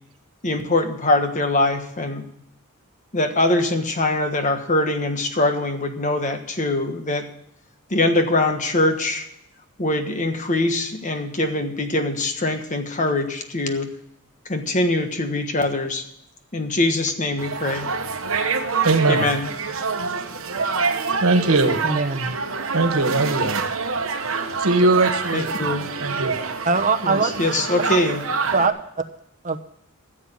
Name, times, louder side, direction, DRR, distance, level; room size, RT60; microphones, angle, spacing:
voice 1, 0.4-2.2 3.1-7.3 7.9-9.3 9.8-13.9 14.5-16.0 16.5-17.9 19.1-19.5 25.3-25.9 27.0-28.2, left 2 dB, 35° left, 6 dB, 1.3 m, -22 dB
sound 1, 17.4-28.7, right 5 dB, 70° right, 1.1 m, -26 dB
voice 2, 18.8-19.3 21.2-21.8 22.7-23.6 24.6-25.5 26.0-26.4, right 2 dB, 90° right, 7 dB, 1.5 m, -20 dB
voice 3, 21.8-22.3 26.6-27.3 28.5-28.7 29.4-29.6, right 4 dB, 35° right, 6 dB, 1.0 m, -21 dB
14.5 x 7.6 x 7.3 m, 0.76 s
head